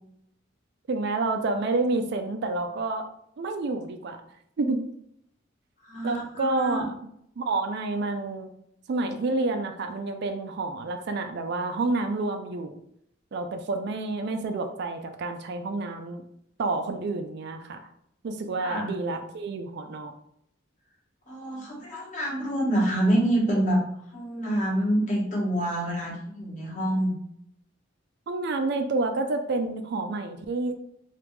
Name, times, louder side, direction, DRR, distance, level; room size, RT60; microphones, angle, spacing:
voice 1, 0.9-3.1 3.4-4.2 4.6-4.8 6.0-6.9 7.4-8.5 8.9-12.8 13.3-16.2 16.6-17.8 18.2-20.1 28.3-30.7, right 3 dB, 60° right, 7 dB, 0.4 m, -29 dB
voice 2, 5.8-6.8 18.6-18.9 21.3-23.8 24.1-27.1, right 1 dB, 40° left, -4 dB, 1.2 m, -26 dB
3.4 x 2.4 x 3.1 m, 0.71 s
head